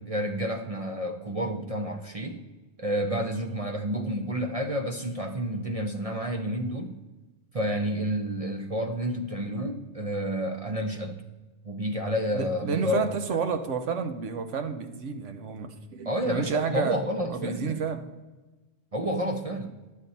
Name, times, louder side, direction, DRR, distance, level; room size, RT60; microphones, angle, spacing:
voice 1, 0.0-2.4 2.8-7.0 7.5-11.2 11.6-13.1 16.1-17.8 18.9-19.7, equal, 40° right, 4 dB, 0.5 m, -30 dB
voice 2, 12.3-17.0 17.3-18.0, right 5 dB, 75° right, 8 dB, 1.2 m, -30 dB
10.5 x 7.5 x 4.1 m, 1.2 s
omnidirectional pair, 1.3 m